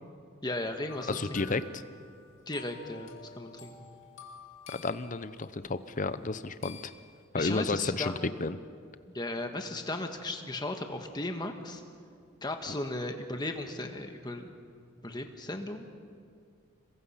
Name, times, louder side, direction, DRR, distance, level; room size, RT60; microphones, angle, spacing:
voice 1, 0.4-1.6 2.5-3.9 7.4-8.2 9.1-11.8 12.4-14.5 15.0-15.9, left 2 dB, 20° left, 5 dB, 1.4 m, -36 dB
sound 1, 0.9-5.7 6.6-7.2, left 5 dB, 55° left, 2.6 m, -50 dB
voice 2, 1.1-1.8 4.7-6.8 7.3-8.1 8.4-8.6, left 3 dB, 35° left, 13 dB, 0.6 m, -32 dB
26.5 x 22.0 x 5.7 m, 2.3 s
head